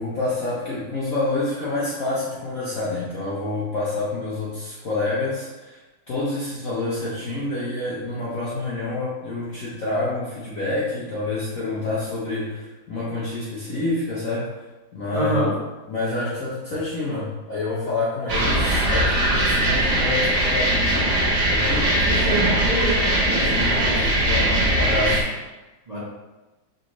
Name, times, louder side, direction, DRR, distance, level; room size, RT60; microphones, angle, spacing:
voice 1, 0.0-5.8 6.1-14.5 14.9-15.5 15.9-21.1 21.5-21.9 23.3-25.2, left 2 dB, 60° left, -7 dB, 0.9 m, -28 dB
voice 2, 15.1-15.5 22.0-23.0 23.7-24.0 25.9-26.0, right 1 dB, 35° right, -9 dB, 0.6 m, -25 dB
sound 1, 18.3-25.2, right 1 dB, 60° right, 1.4 m, -20 dB
5.1 x 3.4 x 3.0 m, 1.1 s
omnidirectional pair, 2.4 m